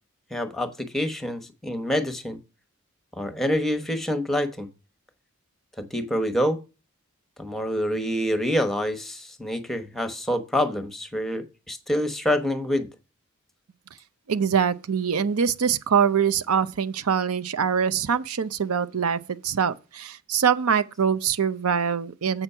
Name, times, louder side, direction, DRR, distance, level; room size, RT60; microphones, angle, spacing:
voice 1, 0.3-2.4 3.1-4.7 5.8-6.6 7.4-12.9, equal, ahead, 1.0 m, -26 dB
voice 2, 14.3-22.4, right 7 dB, 85° right, 0.6 m, -24 dB
7.9 x 6.1 x 5.5 m
head